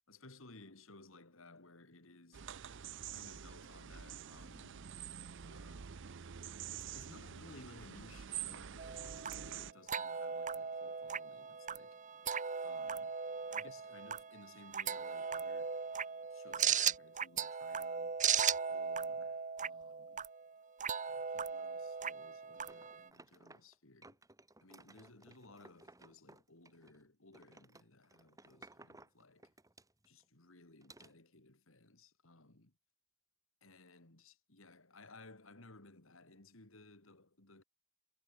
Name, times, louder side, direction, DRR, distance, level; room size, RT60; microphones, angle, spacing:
voice 1, 0.1-2.5 3.1-4.9 5.4-6.1 6.7-12.0 12.6-13.2 13.5-15.8 16.3-18.4 18.7-20.2 21.1-24.2 24.6-29.5 30.0-32.7 33.6-37.6, left 2 dB, 70° left, 3.2 m, -59 dB
sound 1, 2.3-9.7, right 9 dB, 60° right, 0.6 m, -47 dB
sound 2, 8.8-23.1, right 7 dB, 40° right, 1.5 m, -38 dB
sound 3, 22.7-23.7 24.0-27.0 27.3-30.2 30.8-31.1, right 2 dB, 15° right, 2.6 m, -59 dB
head